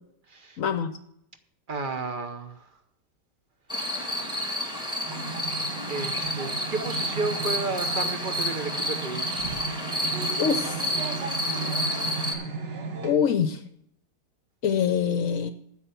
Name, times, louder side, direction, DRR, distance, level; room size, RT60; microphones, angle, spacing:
voice 1, 0.6-0.9 10.4-10.8 13.0-13.6 14.6-15.5, left 7 dB, 60° left, 0.9 m, -24 dB
voice 2, 1.7-2.6 4.7-5.1 5.5-9.6, right 3 dB, 45° right, 0.7 m, -33 dB
sound 1, 3.7-12.3, left 1 dB, 5° right, 1.9 m, -30 dB
sound 2, 5.0-13.1, right 5 dB, 75° right, 1.9 m, -35 dB
9.8 x 8.1 x 6.9 m
omnidirectional pair, 1.9 m